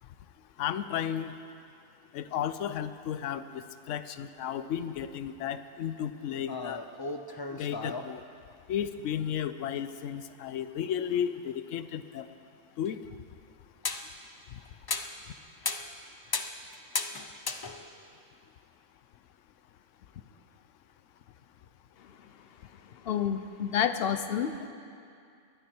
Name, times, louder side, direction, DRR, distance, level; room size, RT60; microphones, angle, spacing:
voice 1, 0.6-1.3 2.1-6.8 7.5-8.2 8.7-12.3 12.8-13.0, left 9 dB, 75° left, 12 dB, 1.0 m, -33 dB
sound 1, 6.5-8.1 12.9-13.0 13.8-14.1 14.7-15.2 15.6-16.0 16.3-18.1, left 3 dB, 40° left, 0.3 m, -35 dB
voice 2, 23.0-24.7, left 8 dB, 55° left, 10 dB, 0.9 m, -29 dB
19.5 x 12.5 x 4.5 m, 2.5 s
omnidirectional pair, 1.3 m